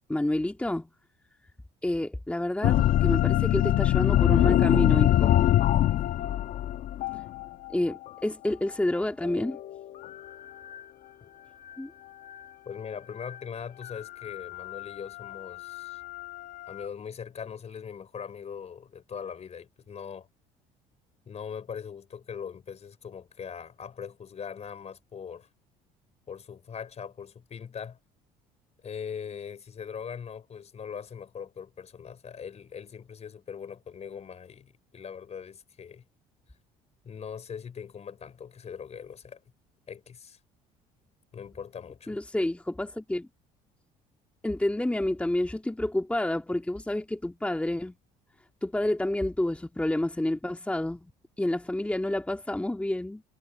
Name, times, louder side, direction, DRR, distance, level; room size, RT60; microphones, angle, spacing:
voice 1, 0.1-0.9 1.8-5.3 7.7-9.6 11.8-11.9 42.1-43.3 44.4-47.9 48.6-51.1 51.4-53.2, left 1 dB, 10° left, 1.9 m, -29 dB
sound 1, 2.6-8.1 9.2-10.3 10.7-10.8 13.3-13.4 13.8-16.9, left 13 dB, 60° left, 1.1 m, -24 dB
voice 2, 12.6-16.0 16.7-20.3 21.3-25.5 26.3-28.0 28.8-36.0 37.0-39.4 39.9-40.4 41.3-42.2, left 7 dB, 40° left, 4.7 m, -41 dB
supercardioid pair, 80°, 17 cm